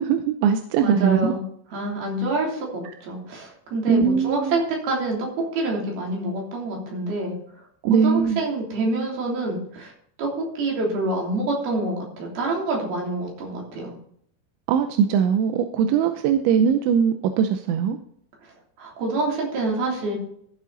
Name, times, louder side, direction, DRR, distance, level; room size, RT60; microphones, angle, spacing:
voice 1, 0.0-1.3 3.9-4.6 7.8-8.4 14.7-18.0, right 7 dB, 85° right, 7 dB, 3.0 m, -21 dB
voice 2, 0.8-1.4 1.7-7.3 7.9-9.9 10.2-10.3 10.6-13.9 18.8-20.2, right 2 dB, 55° right, -2 dB, 4.9 m, -27 dB
14.5 x 7.4 x 4.0 m, 0.65 s
omnidirectional pair, 5.4 m